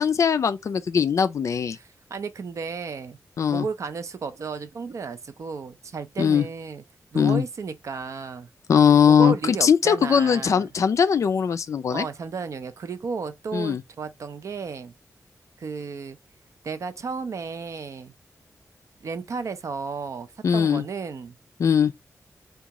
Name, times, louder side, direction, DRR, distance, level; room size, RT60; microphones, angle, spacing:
voice 1, 0.0-1.8 3.4-3.6 6.2-6.4 7.1-7.4 8.7-12.1 13.5-13.8 20.4-20.8 21.6-21.9, left 7 dB, 60° left, 0.3 m, -20 dB
voice 2, 1.8-3.2 3.5-6.8 7.1-8.5 9.1-10.7 11.9-14.9 15.6-16.2 16.6-18.1 19.0-21.4, right 5 dB, 60° right, 0.5 m, -33 dB
3.6 x 2.3 x 2.9 m
wide cardioid pair, 165°, 6 cm